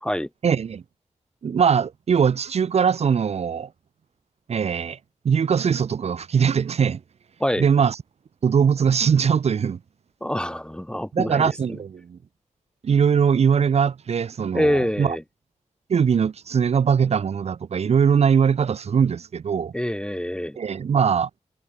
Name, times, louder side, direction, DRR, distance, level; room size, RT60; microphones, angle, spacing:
voice 1, 0.4-0.8 1.4-3.7 4.5-5.0 5.2-7.0 7.6-8.0 8.4-9.8 11.1-12.2 12.8-15.2 15.9-19.7 20.6-21.3, right 7 dB, 55° right, 0.4 m, -21 dB
voice 2, 10.2-11.5 14.5-15.2 19.7-20.6, equal, 5° left, 0.7 m, -25 dB
wide cardioid pair, 90°, 13 cm